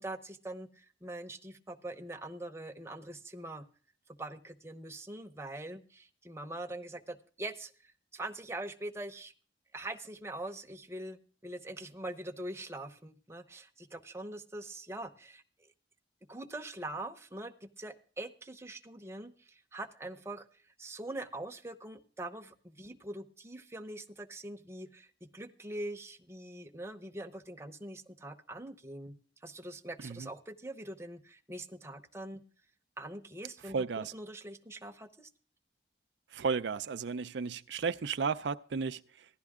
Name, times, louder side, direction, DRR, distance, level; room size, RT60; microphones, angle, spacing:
voice 1, 0.0-3.6 4.2-9.3 9.7-15.7 16.3-29.2 29.4-32.4 33.0-35.3, right 1 dB, 15° right, 0.8 m, -43 dB
voice 2, 33.6-34.1 36.3-39.3, right 5 dB, 75° right, 0.5 m, -34 dB
15.0 x 11.5 x 3.6 m
head